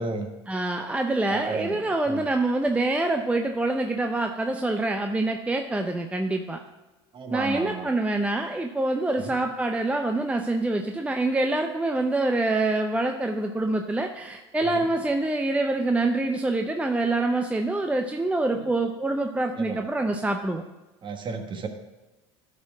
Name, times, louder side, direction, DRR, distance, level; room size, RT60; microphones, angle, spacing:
voice 1, 0.5-6.6 7.3-20.6, right 2 dB, 10° right, 4 dB, 0.6 m, -26 dB
voice 2, 1.3-2.2 7.1-7.9 9.2-9.4 14.6-14.9 18.5-18.7 19.6-19.8 21.0-21.7, right 4 dB, 35° right, 5 dB, 1.3 m, -33 dB
11.5 x 4.4 x 4.7 m, 1.1 s
supercardioid pair, 95°, 15 cm